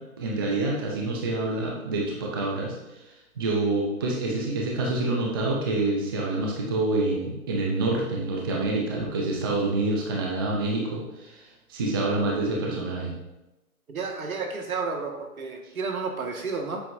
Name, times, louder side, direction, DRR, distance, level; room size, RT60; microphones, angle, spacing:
voice 1, 0.0-3.0 3.4-13.2, right 2 dB, 15° right, -2 dB, 0.5 m, -27 dB
voice 2, 13.9-16.8, right 4 dB, 70° right, 2 dB, 1.9 m, -31 dB
11.0 x 7.9 x 2.7 m, 1.0 s
hypercardioid pair, 150°, 44 cm